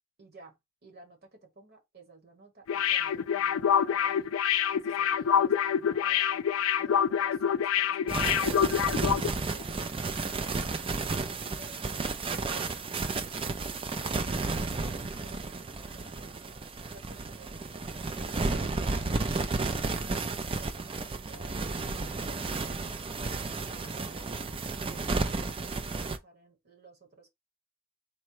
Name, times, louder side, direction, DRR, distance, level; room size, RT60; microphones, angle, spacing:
voice 1, 0.2-0.5 0.8-4.3 4.7-6.4 6.8-10.1 10.5-11.8 12.4-13.1 14.4-19.3 19.7-27.3, right 3 dB, 50° right, 1.3 m, -55 dB
sound 1, 2.7-9.3 9.6-9.7, left 8 dB, 85° left, 0.4 m, -26 dB
sound 2, 8.1-26.2, right 3 dB, 25° right, 0.4 m, -32 dB
4.1 x 2.2 x 4.6 m
head